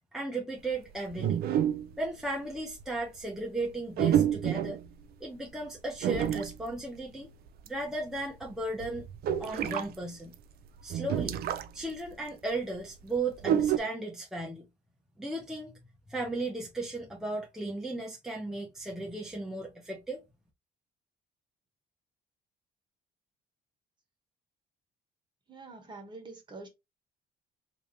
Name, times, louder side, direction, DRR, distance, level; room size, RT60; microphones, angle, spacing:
voice 1, 0.1-1.4 2.0-4.8 5.2-7.3 7.7-9.1 9.4-10.3 10.8-11.4 11.7-14.7 15.2-15.8 16.1-20.2, right 2 dB, 5° right, 0.9 m, -35 dB
sound 1, 1.1-2.1 2.6-2.8 4.0-4.9 6.0-6.7 7.5-7.7 7.9-8.0 8.4-9.9 10.3-10.4 10.8-11.8 12.1-12.2 13.4-13.8, right 10 dB, 65° right, 0.5 m, -28 dB
voice 2, 25.5-26.7, right 3 dB, 25° right, 1.5 m, -46 dB
3.4 x 2.8 x 3.0 m
cardioid pair, 110°, 17 cm